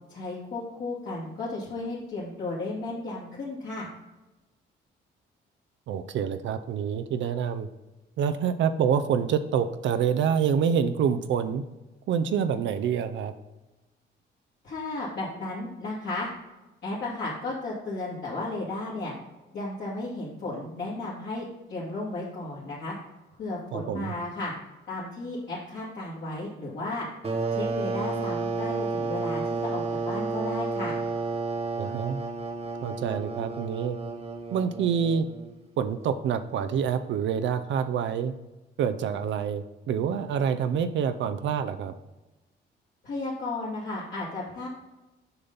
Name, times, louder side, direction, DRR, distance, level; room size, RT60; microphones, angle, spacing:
voice 1, 0.1-3.9 14.6-16.3 16.8-19.1 19.5-22.9 23.4-24.5 24.9-27.1 27.5-31.0 43.0-44.7, left 2 dB, 55° left, -8 dB, 2.2 m, -34 dB
voice 2, 5.9-7.7 8.2-11.6 12.1-13.3 23.7-24.1 31.8-32.2 32.8-34.0 34.5-35.3 35.8-38.3 38.8-41.9, right 7 dB, 70° right, 10 dB, 0.5 m, -27 dB
sound 1, 27.2-35.6, right 3 dB, 30° right, 1.1 m, -31 dB
6.8 x 5.5 x 4.0 m, 1.1 s
cardioid pair, 90°, 20 cm